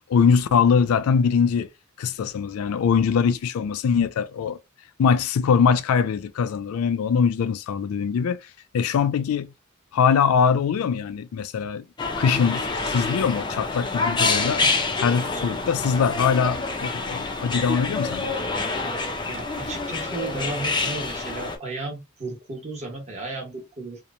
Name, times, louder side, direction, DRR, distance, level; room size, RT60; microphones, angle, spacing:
voice 1, 0.1-1.7 2.0-4.6 5.0-9.5 9.9-11.8 12.2-18.3, left 6 dB, 85° left, 0.3 m, -22 dB
sound 1, 12.0-21.6, left 3 dB, 20° left, 0.4 m, -27 dB
voice 2, 19.2-24.0, right 2 dB, 30° right, 1.1 m, -34 dB
2.9 x 2.1 x 2.4 m
head